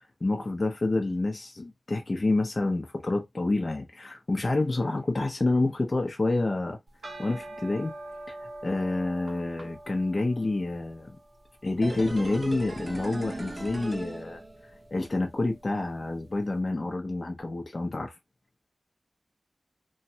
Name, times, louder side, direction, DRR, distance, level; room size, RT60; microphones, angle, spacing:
voice 1, 0.2-6.8 7.2-7.9 8.3-8.4 8.6-11.2 11.6-14.4 14.9-18.2, left 2 dB, 50° left, 0.7 m, -28 dB
sound 1, 6.9-16.2, right 1 dB, 70° right, 0.9 m, -46 dB
sound 2, 11.8-14.9 15.2-15.3, right 2 dB, 35° right, 0.8 m, -37 dB
3.1 x 2.3 x 2.8 m
wide cardioid pair, 80°, 0 cm